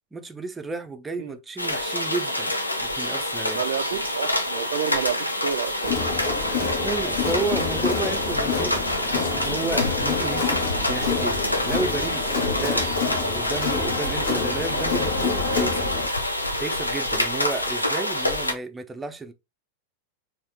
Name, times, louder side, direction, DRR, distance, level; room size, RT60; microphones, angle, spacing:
voice 1, 0.1-3.6 6.8-15.9 16.6-19.3, right 3 dB, 10° right, 0.6 m, -32 dB
sound 1, 1.6-18.5, left 1 dB, 85° left, 0.7 m, -27 dB
voice 2, 3.5-5.9 12.6-12.7, right 9 dB, 60° right, 0.4 m, -30 dB
Crowd, 5.8-16.1, left 5 dB, 60° left, 1.4 m, -28 dB
4.2 x 2.8 x 3.6 m
figure-of-eight pair, 90°, 0 cm